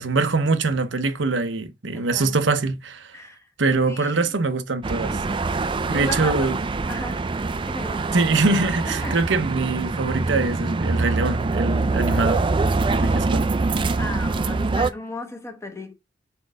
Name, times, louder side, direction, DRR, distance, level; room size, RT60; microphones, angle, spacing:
voice 1, 0.0-3.2 3.6-5.2 5.9-6.6 8.1-12.5 12.9-13.8, right 3 dB, 85° right, 0.9 m, -23 dB
voice 2, 1.9-2.4 3.1-3.4 3.8-4.2 5.9-6.5 6.9-7.3 7.7-8.2 8.8-9.2 14.0-15.9, left 1 dB, 15° left, 1.2 m, -35 dB
sound 1, 4.8-14.9, right 3 dB, 25° right, 0.4 m, -24 dB
4.5 x 4.4 x 4.9 m
head